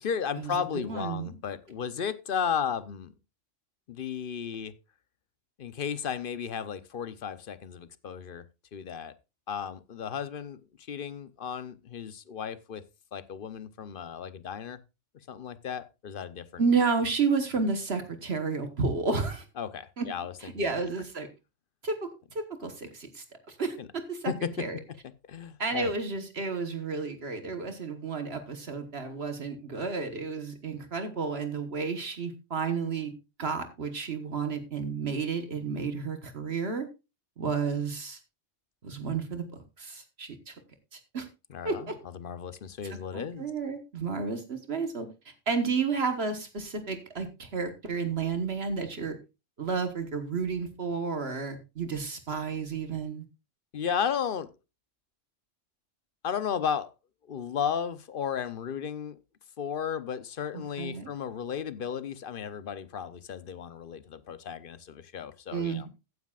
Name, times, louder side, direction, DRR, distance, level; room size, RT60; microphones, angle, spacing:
voice 1, 0.0-3.1 3.9-4.7 5.6-8.4 8.7-9.1 9.5-10.6 10.9-12.8 13.1-14.8 15.3-16.6 19.6-20.7 23.8-23.9 24.3-24.6 25.3-25.9 41.5-41.9 42.1-43.5 53.7-54.5 56.2-56.9 57.3-59.2 59.6-65.9, left 7 dB, 50° left, 0.8 m, -34 dB
voice 2, 0.8-1.3 16.6-19.4 20.0-20.1 20.4-21.3 21.8-22.1 22.3-24.3 24.6-24.8 25.6-36.9 37.4-38.2 38.8-39.5 39.8-40.5 40.9-41.3 41.6-41.9 43.1-49.2 49.6-53.2 60.5-61.1 65.5-65.9, right 5 dB, 60° right, 1.4 m, -31 dB
15.0 x 9.4 x 2.4 m
omnidirectional pair, 1.2 m